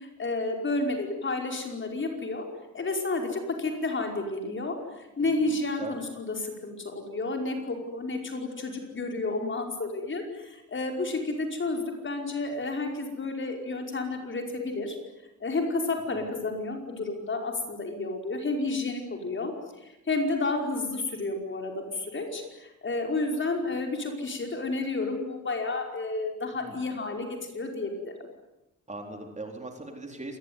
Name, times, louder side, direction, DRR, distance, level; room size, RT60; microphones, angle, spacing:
voice 1, 0.0-2.5 2.7-15.0 15.4-19.5 19.8-28.1, left 3 dB, 40° left, 3 dB, 5.3 m, -31 dB
voice 2, 5.2-5.5 5.8-6.0 16.1-16.3 26.6-26.8 28.9-30.4, right 2 dB, 20° right, 3 dB, 4.0 m, -40 dB
27.0 x 20.5 x 9.7 m, 0.96 s
wide cardioid pair, 165°, 32 cm